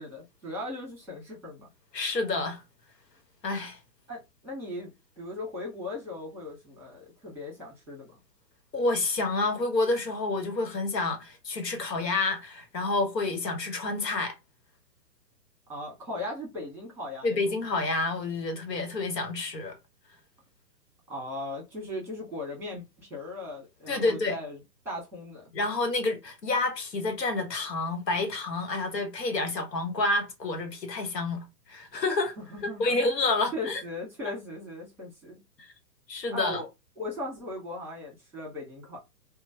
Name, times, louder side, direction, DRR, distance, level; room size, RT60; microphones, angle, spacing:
voice 1, 0.0-1.7 4.1-8.1 15.7-17.4 21.1-24.6 24.8-25.4 32.4-33.0 33.5-35.4 36.3-36.7 37.0-39.0, left 2 dB, 5° right, 1.4 m, -38 dB
voice 2, 1.9-2.6 3.4-3.8 8.7-14.4 17.2-19.8 23.9-24.4 25.5-32.4 32.6-33.8 34.2-34.3 35.6-35.7 36.1-36.6, left 3 dB, 80° left, 1.1 m, -29 dB
2.9 x 2.1 x 2.7 m
figure-of-eight pair, 125°, 48 cm